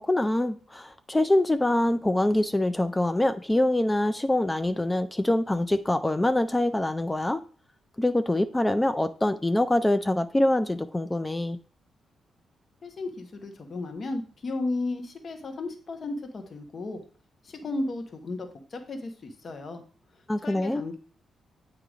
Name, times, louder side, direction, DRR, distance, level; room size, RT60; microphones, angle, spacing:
voice 1, 0.0-7.4 8.0-11.6 20.3-20.8, left 1 dB, 15° left, 0.4 m, -24 dB
voice 2, 12.8-17.0 17.4-19.8 20.4-21.0, left 2 dB, 55° left, 1.1 m, -34 dB
8.0 x 2.9 x 4.9 m
cardioid pair, 75°, 0 cm